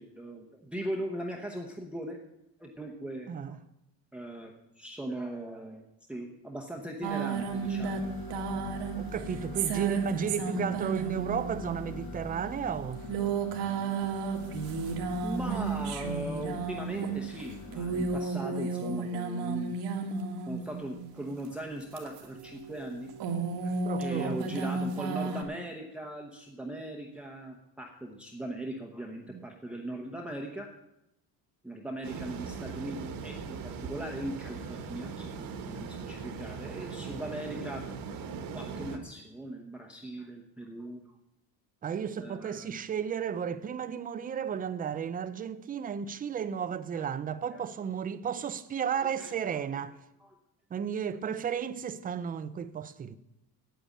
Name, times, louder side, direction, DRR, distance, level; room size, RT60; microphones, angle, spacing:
voice 1, 0.0-2.2 2.6-3.6 4.1-5.8 6.1-8.1 15.2-19.8 20.5-23.1 23.6-30.7 31.6-37.9 38.5-41.0 42.2-42.8 46.9-47.1 47.5-47.6 48.9-49.6 50.2-50.4, right 1 dB, 5° right, 0.9 m, -39 dB
voice 2, 3.3-3.6 8.9-13.0 18.9-19.1 23.8-24.5 29.3-29.5 41.8-50.0 50.7-53.2, right 7 dB, 20° right, 0.4 m, -34 dB
sound 1, 7.0-21.1 21.8-25.4, right 4 dB, 85° right, 1.9 m, -33 dB
sound 2, 7.3-18.2, left 4 dB, 65° left, 1.6 m, -43 dB
sound 3, 32.0-39.0, right 5 dB, 55° right, 1.5 m, -40 dB
9.1 x 8.6 x 8.4 m
cardioid pair, 160°, 40 cm